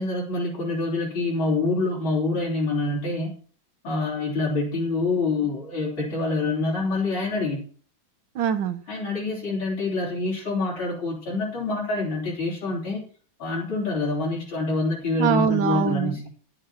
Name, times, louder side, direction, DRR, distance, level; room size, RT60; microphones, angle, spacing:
voice 1, 0.0-3.3 3.8-7.6 8.9-13.0 13.4-16.2, left 3 dB, 75° left, -6 dB, 4.4 m, -26 dB
voice 2, 8.3-8.8 15.2-16.3, right 8 dB, 70° right, 10 dB, 1.4 m, -23 dB
10.5 x 7.6 x 5.8 m, 0.43 s
omnidirectional pair, 2.2 m